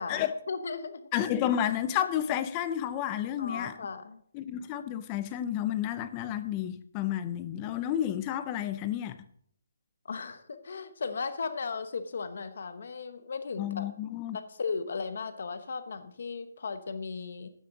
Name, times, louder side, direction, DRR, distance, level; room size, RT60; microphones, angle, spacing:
voice 1, 0.0-1.1 3.4-4.2 10.1-13.9 14.3-17.5, left 5 dB, 45° left, 1.0 m, -36 dB
voice 2, 1.1-3.7 4.3-9.2 13.6-14.4, left 11 dB, 15° left, 0.4 m, -31 dB
12.0 x 9.3 x 3.9 m
hypercardioid pair, 180°, 0 cm